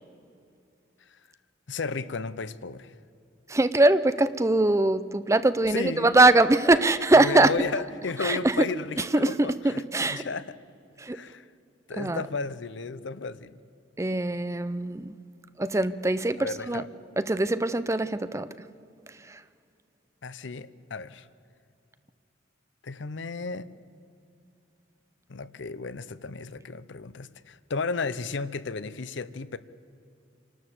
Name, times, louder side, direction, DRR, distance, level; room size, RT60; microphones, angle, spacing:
voice 1, 1.7-3.0 5.3-5.4 5.7-6.2 7.1-10.6 11.1-11.5 11.9-13.6 16.4-16.9 20.2-21.3 22.8-23.7 25.3-29.6, left 4 dB, 70° left, 15 dB, 0.7 m, -34 dB
voice 2, 3.5-7.5 8.2-8.6 9.0-10.2 11.0-11.2 12.0-12.2 14.0-15.1 15.6-16.8 17.2-18.5 19.3-19.4, right 2 dB, 15° right, 13 dB, 0.5 m, -22 dB
27.0 x 12.5 x 8.0 m, 2.5 s
head